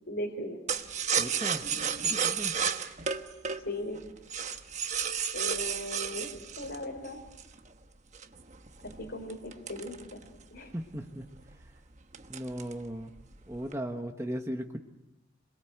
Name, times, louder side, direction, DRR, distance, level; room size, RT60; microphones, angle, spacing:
voice 1, 0.1-0.6 3.6-4.0 5.3-6.3 6.6-7.2 8.8-10.2 10.5-10.7, left 1 dB, 60° left, -2 dB, 4.1 m, -38 dB
sound 1, 0.7-7.6 8.1-10.6 11.0-11.1 11.4-11.7 12.1-12.9 13.2-13.7, right 7 dB, 35° right, 1.2 m, -32 dB
voice 2, 1.2-1.7 2.0-2.6 10.6-11.3 11.7-11.8 12.3-13.1 13.5-14.8, equal, 15° right, 3 dB, 1.2 m, -37 dB
27.5 x 21.5 x 8.0 m, 0.91 s
head